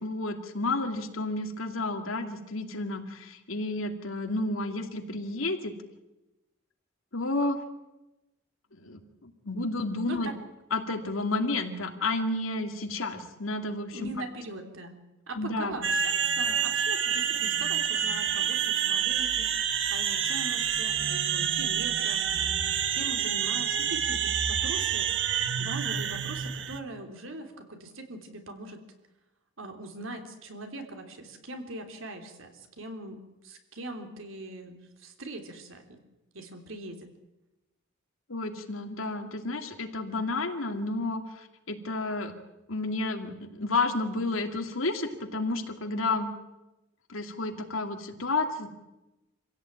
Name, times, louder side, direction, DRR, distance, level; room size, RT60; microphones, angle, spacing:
voice 1, 0.0-5.7 7.1-7.6 8.7-10.3 10.7-14.1 15.4-15.8 38.3-42.3 42.7-46.3 47.1-48.7, left 2 dB, 90° left, 5 dB, 2.6 m, -31 dB
voice 2, 13.9-14.9 15.3-19.5 19.9-22.6 22.9-28.8 29.6-36.0 36.3-37.1, right 2 dB, 80° right, 5 dB, 3.3 m, -41 dB
sound 1, 15.8-26.8, right 8 dB, 60° right, 1.5 m, -28 dB
26.0 x 16.5 x 9.0 m, 1.0 s
head